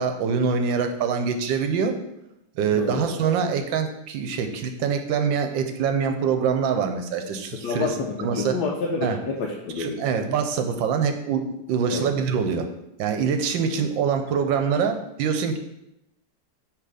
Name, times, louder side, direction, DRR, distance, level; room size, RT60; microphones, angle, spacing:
voice 1, 0.0-2.0 2.6-7.9 8.2-8.6 9.0-9.2 9.8-12.7 13.0-15.6, right 6 dB, 85° right, 6 dB, 1.4 m, -24 dB
voice 2, 2.7-3.1 7.5-10.1 11.9-12.1, left 4 dB, 70° left, 0 dB, 1.2 m, -29 dB
5.8 x 3.4 x 4.9 m, 0.85 s
omnidirectional pair, 2.0 m